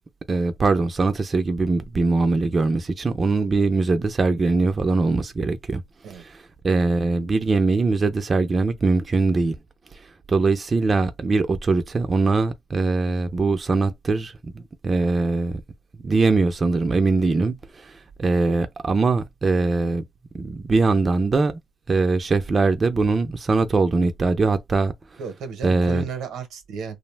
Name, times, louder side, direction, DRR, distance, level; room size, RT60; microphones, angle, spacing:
voice 1, 0.3-5.8 6.1-9.6 9.9-15.6 16.0-20.0 20.3-21.6 21.9-24.9 25.6-26.0, right 3 dB, 35° right, 0.4 m, -22 dB
voice 2, 25.2-27.0, right 6 dB, 85° right, 0.7 m, -33 dB
2.5 x 2.0 x 3.2 m
cardioid pair, 90°, 0 cm